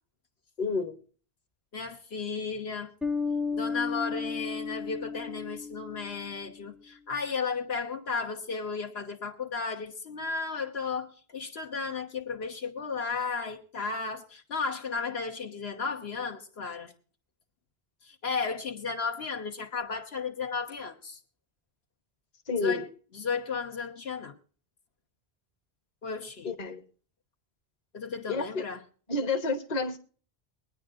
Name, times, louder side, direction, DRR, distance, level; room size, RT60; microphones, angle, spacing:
voice 1, 0.6-1.0 22.5-22.9 26.4-26.8 28.3-28.7 29.1-30.0, left 3 dB, 40° left, 1.1 m, -29 dB
voice 2, 1.7-2.9 3.5-16.9 18.0-21.2 22.6-22.9 23.1-24.3 26.0-26.5 27.9-28.8, left 5 dB, 80° left, 1.5 m, -34 dB
Bass guitar, 3.0-6.5, left 5 dB, ahead, 0.4 m, -33 dB
22.5 x 9.7 x 2.5 m
omnidirectional pair, 1.0 m